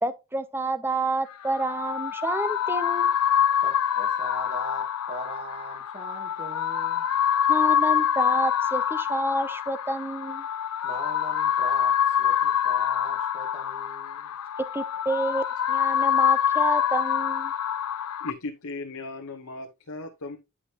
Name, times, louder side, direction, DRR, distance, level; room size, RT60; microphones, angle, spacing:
voice 1, 0.0-3.2 7.5-10.5 14.7-17.5, right 2 dB, 10° right, 0.6 m, -29 dB
sound 1, 1.3-18.3, left 9 dB, 90° left, 0.5 m, -25 dB
voice 2, 3.6-7.0 10.8-14.3, right 1 dB, 25° right, 2.2 m, -41 dB
voice 3, 18.2-20.4, left 2 dB, 70° left, 1.0 m, -37 dB
10.0 x 5.0 x 2.8 m
head